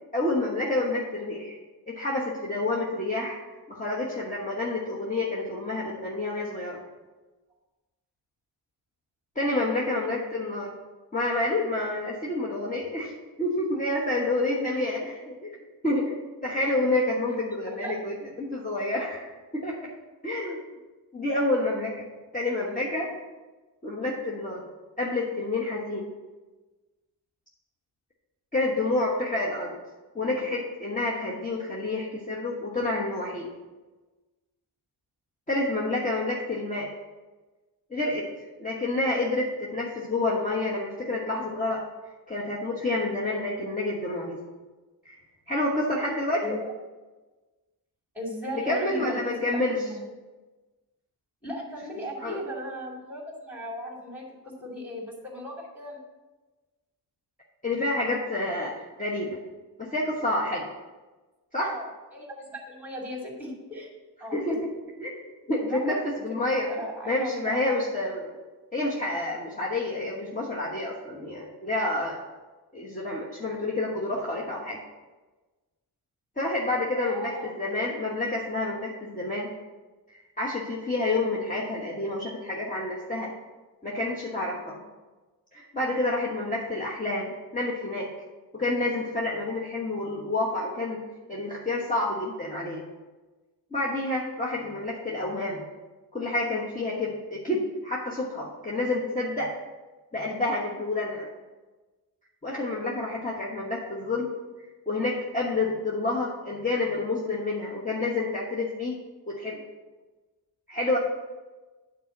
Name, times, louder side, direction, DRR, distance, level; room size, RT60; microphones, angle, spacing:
voice 1, 0.1-1.6 1.9-3.4 3.7-6.8 9.3-10.7 11.1-13.1 13.4-15.6 15.8-16.1 16.4-19.9 20.2-20.6 21.1-22.1 22.3-23.1 23.8-24.6 25.0-26.1 28.5-29.7 30.1-33.5 35.5-36.9 37.9-38.3 38.6-41.8 42.3-44.4 45.0-45.2 45.5-46.5 48.5-49.7 52.2-52.4 57.6-58.7 59.0-59.4 59.8-60.7 61.5-61.7 64.3-64.6 65.0-65.2 65.5-66.7 67.1-68.3 68.7-72.2 72.7-74.8 76.4-79.5 80.4-83.3 83.8-84.8 85.5-88.1 88.5-91.0 91.3-92.8 93.7-95.6 96.1-99.5 100.1-101.3 102.4-104.3 104.9-109.0 109.3-109.6 110.7-111.0, left 2 dB, 20° left, -5 dB, 1.2 m, -28 dB
voice 2, 9.5-10.1 14.6-14.9 17.7-18.0 46.4-46.8 48.1-50.1 51.4-56.0 61.6-63.9 64.2-64.4 65.7-66.0 66.7-67.9 76.9-77.7 103.8-103.9, equal, 5° right, -1 dB, 2.4 m, -37 dB
9.2 x 4.3 x 7.1 m, 1.2 s
wide cardioid pair, 130°, 41 cm